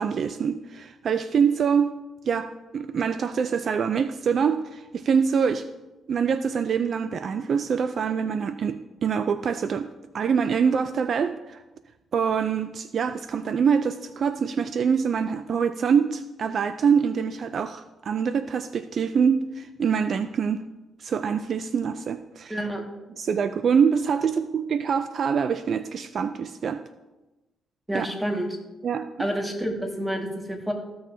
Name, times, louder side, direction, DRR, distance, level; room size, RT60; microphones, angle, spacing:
voice 1, 0.0-1.9 2.3-5.7 6.1-11.6 12.1-20.6 21.0-22.5 23.2-26.8 27.9-28.1 28.8-29.3, right 6 dB, 55° right, 11 dB, 0.3 m, -25 dB
voice 2, 22.5-22.8 27.9-28.5 29.2-30.7, equal, 10° right, 2 dB, 1.7 m, -28 dB
14.5 x 6.3 x 2.7 m, 1.1 s
cardioid pair, 85°, 0 cm